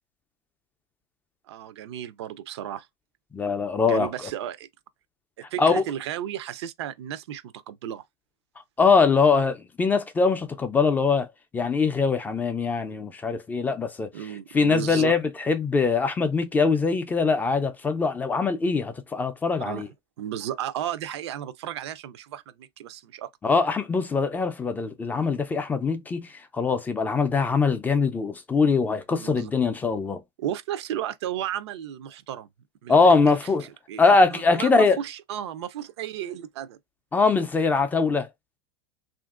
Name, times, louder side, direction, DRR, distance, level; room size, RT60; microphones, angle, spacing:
voice 1, 1.5-2.9 3.8-4.7 5.5-8.0 14.1-15.1 19.6-19.8 20.2-23.3 29.2-29.5 30.4-32.5 32.8-33.0 33.9-36.8, right 11 dB, 80° right, 0.5 m, -34 dB
voice 2, 3.3-4.1 5.6-5.8 8.8-11.3 11.5-14.1 14.5-19.9 23.4-30.2 32.9-33.7 34.0-35.0 37.1-38.3, left 4 dB, 10° left, 0.3 m, -22 dB
2.8 x 2.5 x 2.4 m
supercardioid pair, 130°, 14 cm